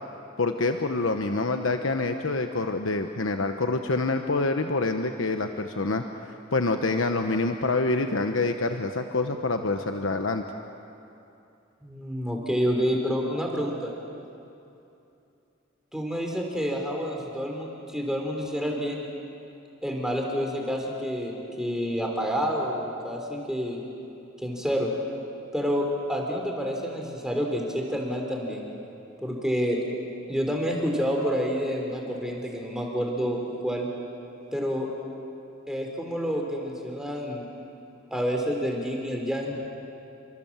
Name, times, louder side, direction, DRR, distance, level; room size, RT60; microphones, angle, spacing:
voice 1, 0.4-6.0 6.5-10.4, left 3 dB, 85° left, 5 dB, 1.1 m, -26 dB
voice 2, 11.8-13.9 15.9-19.1 19.8-23.8 24.4-24.9 25.5-28.7 29.2-29.8 30.3-33.9 34.5-34.9 35.7-37.5 38.1-39.7, equal, 5° right, 0 dB, 3.8 m, -28 dB
29.0 x 25.5 x 7.5 m, 2.7 s
head